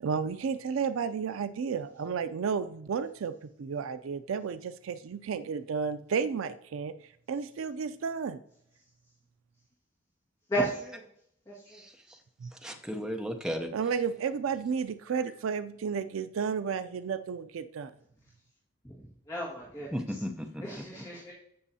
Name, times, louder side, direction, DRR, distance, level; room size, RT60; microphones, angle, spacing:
voice 1, 0.0-3.3 3.6-6.9 7.3-8.4 12.4-12.5 13.7-17.9, right 6 dB, 80° right, 12 dB, 0.4 m, -32 dB
voice 2, 10.5-11.0 11.5-11.8 19.3-19.9 20.6-21.3, right 1 dB, 20° left, -7 dB, 1.7 m, -33 dB
voice 3, 11.7-12.2 12.5-13.7 19.9-21.1, equal, 5° right, 4 dB, 0.7 m, -36 dB
14.5 x 6.1 x 2.8 m, 0.72 s
head